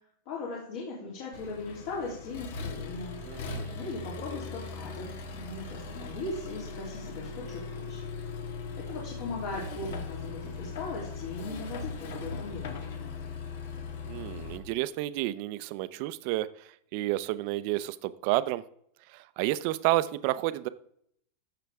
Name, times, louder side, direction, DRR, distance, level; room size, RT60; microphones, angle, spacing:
voice 1, 0.2-3.3 3.7-8.0 8.8-12.8, left 3 dB, 55° left, -5 dB, 3.0 m, -39 dB
Accelerating revving vroom, 1.3-14.6, left 4 dB, 70° left, 1.7 m, -39 dB
voice 2, 3.2-3.7 14.1-18.6 19.1-20.7, right 16 dB, 45° right, 14 dB, 0.5 m, -30 dB
13.5 x 6.7 x 3.5 m, 0.69 s
supercardioid pair, 170°, 0 cm